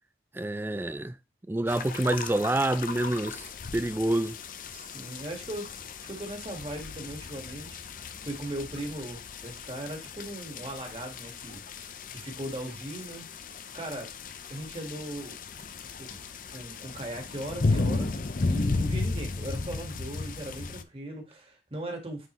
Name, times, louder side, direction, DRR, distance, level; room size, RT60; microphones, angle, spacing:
voice 1, 0.3-1.1 1.5-4.4, right 1 dB, 10° right, 0.3 m, -27 dB
sound 1, 1.7-20.8, left 3 dB, 50° left, 0.5 m, -35 dB
voice 2, 4.7-11.6 12.1-13.2 13.7-14.1 14.5-15.4 16.0-16.2 16.5-22.3, right 1 dB, 30° right, 1.7 m, -38 dB
9.1 x 3.9 x 3.1 m
head